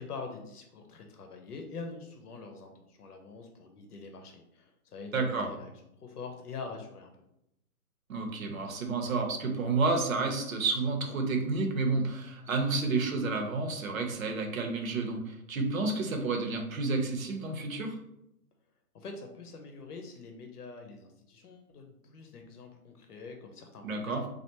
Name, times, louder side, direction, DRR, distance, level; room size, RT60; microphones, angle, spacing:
voice 1, 0.0-5.7 6.0-7.1 18.9-24.3, left 4 dB, 80° left, 4 dB, 0.8 m, -44 dB
voice 2, 5.1-5.5 8.1-18.0 23.8-24.2, right 3 dB, 65° right, 3 dB, 0.8 m, -30 dB
3.3 x 2.5 x 2.8 m, 0.81 s
hypercardioid pair, 160°, 45 cm